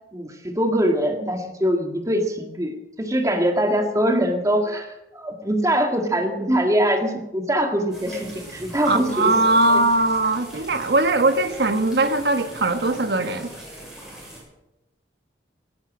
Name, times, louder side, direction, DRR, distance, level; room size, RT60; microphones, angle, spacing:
voice 1, 0.1-9.3 9.7-9.8, equal, 20° right, 4 dB, 1.8 m, -23 dB
sound 1, 7.9-14.4, right 1 dB, 5° right, 6.6 m, -40 dB
voice 2, 8.8-13.5, right 2 dB, 65° right, 9 dB, 1.3 m, -20 dB
18.5 x 10.5 x 6.2 m, 0.97 s
head